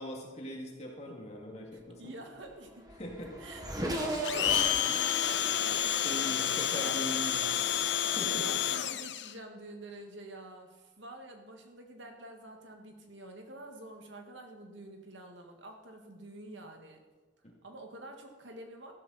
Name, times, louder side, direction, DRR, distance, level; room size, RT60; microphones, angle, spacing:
voice 1, 0.0-2.1 3.0-3.3 5.9-7.5 8.0-8.5 17.4-17.5, equal, 35° left, -1 dB, 2.5 m, -41 dB
voice 2, 1.7-2.9 3.4-6.0 6.5-7.0 7.4-7.5 8.4-17.0 17.6-18.9, right 2 dB, 75° right, 3 dB, 2.0 m, -47 dB
Race car auto racing / Accelerating revving vroom, 2.5-2.6 2.8-6.8, right 1 dB, 20° right, 1.7 m, -37 dB
Domestic sounds home sounds, 4.2-9.3, left 10 dB, 65° left, 0.6 m, -30 dB
14.5 x 13.0 x 4.3 m, 1.3 s
head